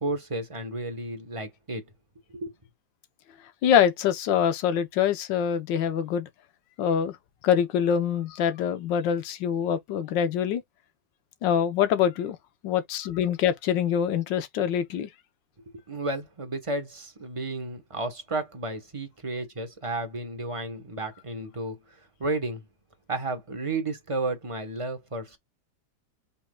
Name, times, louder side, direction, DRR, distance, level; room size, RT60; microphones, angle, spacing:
voice 1, 0.0-1.8 2.3-2.5 15.9-22.6 23.1-25.4, right 2 dB, 25° right, 0.8 m, -32 dB
voice 2, 3.6-6.3 6.8-7.2 7.4-10.6 11.4-12.4 12.6-15.1, left 8 dB, 75° left, 1.5 m, -24 dB
5.4 x 4.0 x 2.2 m
omnidirectional pair, 2.0 m